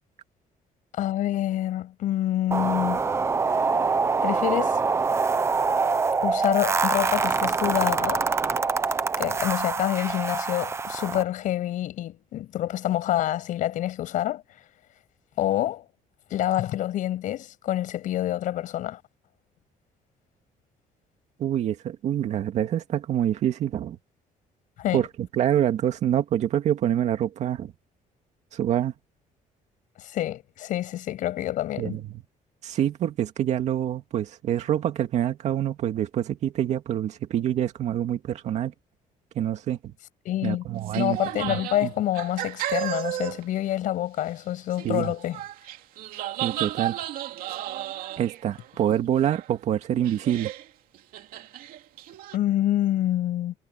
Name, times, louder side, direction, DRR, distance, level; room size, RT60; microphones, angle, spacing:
voice 1, 1.0-3.1 4.2-4.8 6.2-8.2 9.2-14.4 15.4-15.8 16.3-19.0 24.8-25.0 30.0-32.0 40.3-40.7 41.0-45.4 52.3-53.5, left 13 dB, 65° left, 7.0 m, -27 dB
sound 1, 2.5-11.2, right 4 dB, 20° right, 1.0 m, -25 dB
voice 2, 21.4-24.0 24.9-27.7 28.5-28.9 31.8-32.2 32.6-38.7 39.4-39.8 40.4-41.2 41.5-41.9 44.8-45.1 46.4-47.0 48.2-50.5, right 10 dB, 50° right, 2.3 m, -26 dB
sound 2, 40.8-43.4 43.7-43.8 44.7-48.9 49.3-49.7 50.0-50.7 50.9-52.4, right 13 dB, 80° right, 2.5 m, -34 dB
cardioid pair, 180°, 15 cm